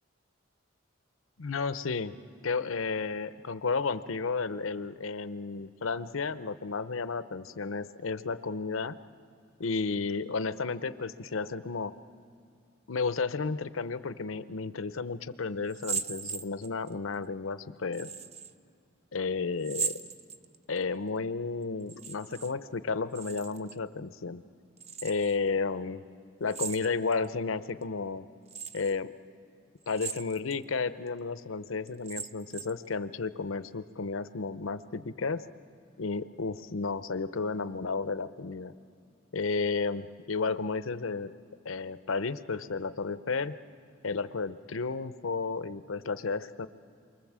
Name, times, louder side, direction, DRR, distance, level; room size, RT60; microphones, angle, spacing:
voice 1, 1.4-2.2 2.4-9.0 9.6-11.9 12.9-18.1 19.1-19.9 20.7-24.4 25.0-26.0 26.4-28.3 28.7-29.1 29.9-35.4 36.0-38.7 39.3-41.3 41.6-43.6 44.0-46.7, left 4 dB, 90° left, 13 dB, 0.7 m, -32 dB
sound 1, 15.7-16.9 17.9-18.5 19.6-20.8 21.8-22.5 22.8-23.8 24.8-25.4 26.5-27.3 27.8-27.9 28.5-29.0 29.8-30.6 31.1-31.2 31.9-32.9, right 6 dB, 30° right, 0.7 m, -38 dB
28.5 x 24.0 x 7.4 m, 2.3 s
head